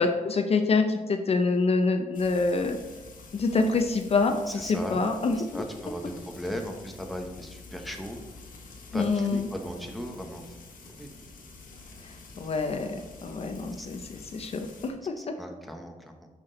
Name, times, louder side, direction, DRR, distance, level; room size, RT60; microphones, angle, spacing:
voice 1, 0.0-2.8 3.3-4.3 4.6-5.6 8.9-9.5 12.4-15.1, left 4 dB, 45° left, 6 dB, 0.6 m, -26 dB
Frying (food), 2.1-14.9, left 3 dB, 75° left, 1.6 m, -48 dB
voice 2, 4.5-5.0 5.3-8.2 8.9-10.4 10.9-11.1 13.8-13.9 15.2-16.3, equal, ahead, 2 dB, 0.9 m, -37 dB
10.5 x 6.0 x 3.9 m, 1.2 s
wide cardioid pair, 165°, 14 cm